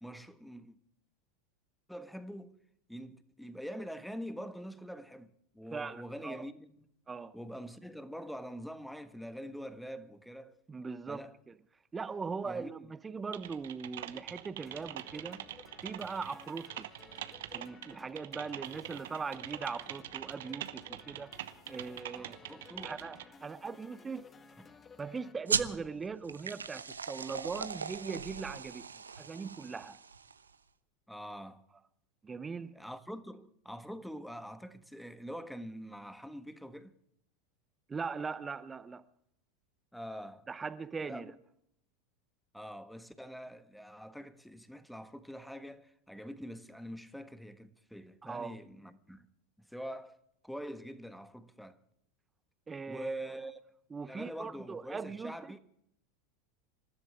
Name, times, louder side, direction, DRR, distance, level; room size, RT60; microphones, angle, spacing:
voice 1, 0.0-0.8 1.9-2.6 2.9-6.9 7.3-10.6 11.1-11.4 12.4-12.9 22.1-22.9 31.1-31.6 32.7-36.9 39.9-40.5 41.1-41.4 42.5-49.3 49.6-50.2 50.4-51.8 52.9-53.6 54.0-55.6, equal, ahead, 1.4 m, -45 dB
voice 2, 5.7-6.4 7.1-7.3 10.7-11.3 11.9-15.5 15.8-16.9 17.5-21.3 21.7-22.4 22.8-24.2 25.0-28.9 29.2-30.0 32.2-32.7 37.9-39.0 40.5-41.3 48.2-48.5 52.7-53.1 53.9-55.4, right 5 dB, 20° right, 0.8 m, -40 dB
Typing, 13.3-23.2, right 12 dB, 70° right, 1.1 m, -44 dB
sound 1, 14.7-25.3, left 5 dB, 25° left, 1.5 m, -56 dB
sound 2, 25.5-30.5, right 5 dB, 85° right, 0.9 m, -38 dB
27.5 x 14.5 x 3.6 m
figure-of-eight pair, 85°, 0 cm